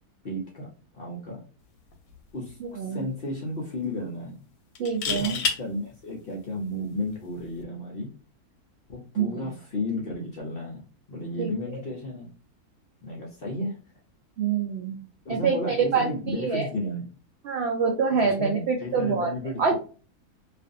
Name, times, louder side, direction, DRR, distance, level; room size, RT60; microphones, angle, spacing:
voice 1, 0.2-0.7 0.9-1.4 2.3-4.4 5.1-8.1 8.9-10.8 11.1-12.3 13.0-13.8 15.2-17.0 18.2-19.7, left 1 dB, 60° left, -2 dB, 0.6 m, -33 dB
sound 1, 1.9-2.1 2.5-2.6 4.8-5.6 7.4-7.6, left 6 dB, 90° left, 1.1 m, -28 dB
voice 2, 4.8-5.3 9.2-9.5 11.4-11.5 14.4-15.0 15.3-16.1 16.4-16.7 17.4-19.3 19.6-19.7, right 5 dB, 80° right, 2 dB, 0.5 m, -25 dB
2.5 x 2.5 x 2.5 m, 0.37 s
omnidirectional pair, 1.6 m